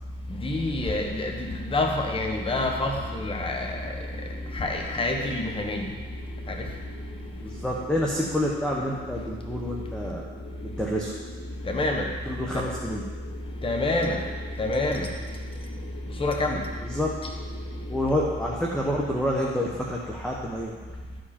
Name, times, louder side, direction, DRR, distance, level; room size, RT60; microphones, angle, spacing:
voice 1, 0.3-3.9 4.5-5.9 6.5-6.7 11.7-12.1 13.6-14.2 14.6-15.1 16.2-16.7, left 2 dB, 25° left, 2 dB, 1.1 m, -27 dB
sound 1, 1.8-18.7, left 2 dB, 65° left, 2.0 m, -45 dB
voice 2, 7.4-10.2 10.6-11.1 12.3-13.0 16.8-17.1 17.9-20.8, equal, 5° left, -3 dB, 1.2 m, -28 dB
13.0 x 5.0 x 4.4 m, 1.5 s
cardioid pair, 90°, 20 cm